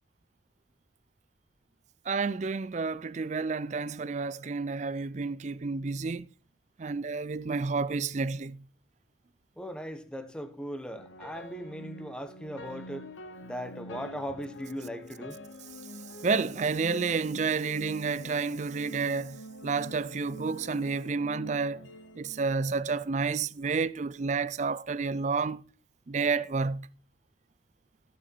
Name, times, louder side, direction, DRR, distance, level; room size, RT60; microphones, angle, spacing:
voice 1, 2.1-6.3 6.8-8.6 16.2-19.4 19.6-21.9 22.2-25.6 26.1-26.9, right 4 dB, 40° right, 0.4 m, -30 dB
voice 2, 9.6-13.0 13.4-15.4, equal, 5° left, 1.0 m, -38 dB
sound 1, 10.9-23.2, left 1 dB, 85° left, 1.1 m, -46 dB
14.5 x 6.9 x 4.4 m
head